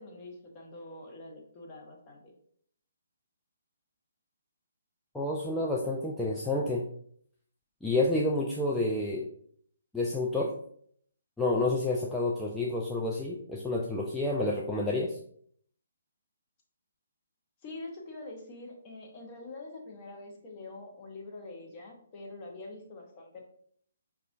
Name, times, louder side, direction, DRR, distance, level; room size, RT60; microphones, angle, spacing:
voice 1, 0.0-2.3 17.6-23.4, left 2 dB, 30° left, 0 dB, 0.9 m, -45 dB
voice 2, 5.1-6.8 7.8-9.3 9.9-10.5 11.4-15.2, left 2 dB, 5° left, -4 dB, 0.3 m, -29 dB
4.7 x 2.4 x 2.5 m, 0.63 s
figure-of-eight pair, 135°, 0 cm